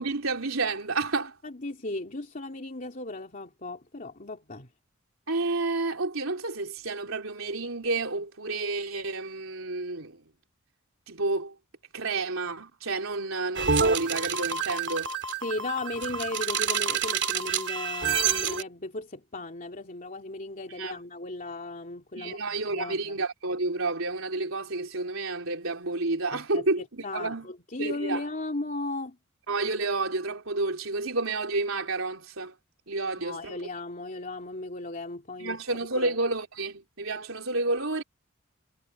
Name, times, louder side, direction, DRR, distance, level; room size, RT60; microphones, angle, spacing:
voice 1, 0.0-1.3 5.3-10.2 11.1-11.5 11.9-15.1 20.8-20.9 22.2-26.8 27.1-27.5 27.8-28.2 29.5-32.5 32.9-33.6 35.4-38.0, right 3 dB, 75° right, 3.7 m, -30 dB
voice 2, 1.4-4.7 15.4-22.4 22.7-23.2 26.3-29.2 33.1-35.6 35.9-36.2, left 2 dB, 40° left, 3.1 m, -36 dB
sound 1, 13.5-18.6, right 6 dB, 60° right, 2.7 m, -28 dB
head